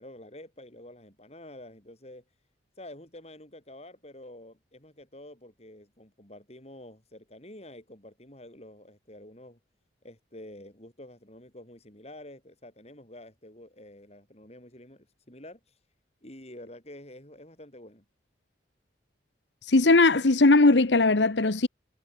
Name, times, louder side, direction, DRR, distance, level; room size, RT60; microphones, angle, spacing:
voice 1, 0.0-2.2 2.8-9.6 10.0-15.7 16.2-18.0, left 1 dB, 35° left, 7.5 m, -48 dB
voice 2, 19.7-21.7, left 2 dB, 85° left, 1.1 m, -19 dB
head